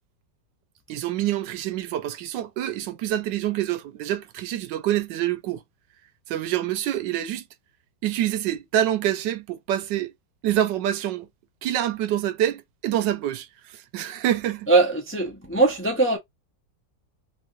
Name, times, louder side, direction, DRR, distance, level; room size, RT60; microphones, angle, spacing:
voice 1, 0.9-5.6 6.3-7.4 8.0-10.1 10.4-11.3 11.6-14.7, right 12 dB, 85° right, 1.3 m, -26 dB
voice 2, 14.7-16.2, right 3 dB, 15° left, 0.4 m, -21 dB
3.1 x 3.0 x 2.4 m
omnidirectional pair, 1.9 m